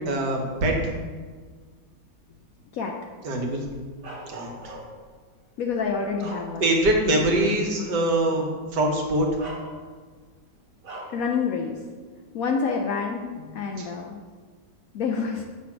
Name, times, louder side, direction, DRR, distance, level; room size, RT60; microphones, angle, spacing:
voice 1, 0.1-0.8 3.2-3.6 4.3-4.5 6.6-9.3 13.7-13.9, right 1 dB, 75° right, 1 dB, 1.7 m, -23 dB
Bark, 4.0-5.1 5.7-6.9 7.4-7.5 8.7-8.8 9.4-10.2 10.8-11.3, right 2 dB, 55° right, 1.5 m, -40 dB
voice 2, 5.6-6.6 11.1-11.8 12.3-14.2 14.9-15.4, left 5 dB, 70° left, 2 dB, 0.8 m, -27 dB
7.5 x 3.4 x 5.9 m, 1.5 s
omnidirectional pair, 1.9 m